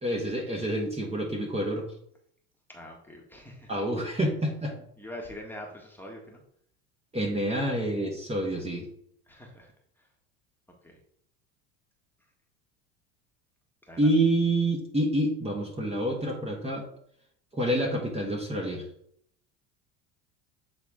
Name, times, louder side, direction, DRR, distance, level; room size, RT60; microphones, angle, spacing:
voice 1, 0.0-1.9 3.7-4.7 7.1-8.9 14.0-16.8 17.5-18.8, right 1 dB, 15° right, 0 dB, 1.4 m, -27 dB
voice 2, 2.7-3.7 5.0-6.4 9.3-9.7 10.8-11.0 13.9-14.1, left 1 dB, 5° left, -1 dB, 1.5 m, -43 dB
8.1 x 3.7 x 3.6 m, 0.67 s
supercardioid pair, 100°, 37 cm